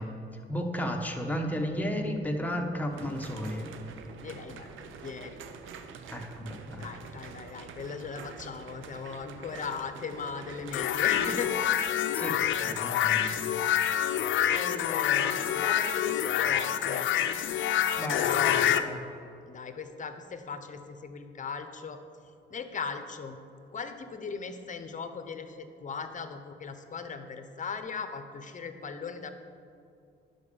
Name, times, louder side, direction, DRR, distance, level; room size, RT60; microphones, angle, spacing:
voice 1, 0.0-3.7 6.1-6.9 12.1-13.3 17.9-19.0, equal, 10° left, 1 dB, 1.3 m, -34 dB
sound 1, 2.9-11.3, right 6 dB, 85° right, 0.8 m, -46 dB
voice 2, 4.2-5.4 6.8-11.5 14.4-17.1 19.5-22.0 22.5-23.4 23.7-29.3, left 5 dB, 40° left, 9 dB, 0.9 m, -38 dB
sound 2, 10.7-18.8, left 10 dB, 75° left, 0.6 m, -27 dB
11.0 x 5.5 x 7.1 m, 2.5 s
cardioid pair, 90°, 20 cm